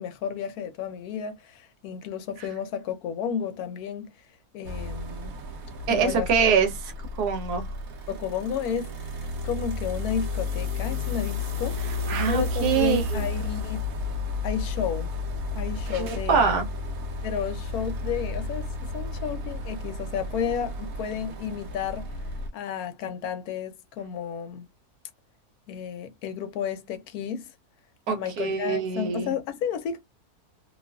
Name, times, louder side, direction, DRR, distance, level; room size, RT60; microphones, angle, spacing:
voice 1, 0.0-4.1 4.5-5.4 5.9-6.3 8.1-9.0 9.4-11.8 12.3-13.8 14.4-15.1 15.5-16.4 17.2-22.1 22.5-24.7 25.7-27.5 28.1-30.0, left 8 dB, 80° left, 1.1 m, -32 dB
sound 1, 4.6-22.5, left 2 dB, 70° right, 1.1 m, -32 dB
voice 2, 5.9-6.9 7.2-7.7 12.1-13.2 16.0-16.7 28.1-29.3, right 6 dB, 90° right, 1.3 m, -24 dB
2.9 x 2.3 x 2.2 m
omnidirectional pair, 1.6 m